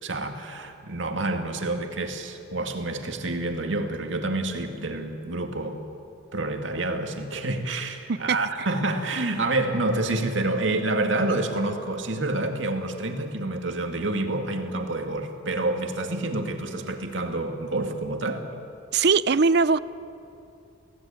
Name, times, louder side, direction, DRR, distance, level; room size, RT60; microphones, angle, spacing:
voice 1, 0.0-5.8 6.3-18.5, right 2 dB, 80° right, 4 dB, 2.2 m, -28 dB
voice 2, 18.9-19.8, right 4 dB, 55° right, 17 dB, 0.6 m, -20 dB
23.5 x 17.0 x 8.9 m, 2.7 s
head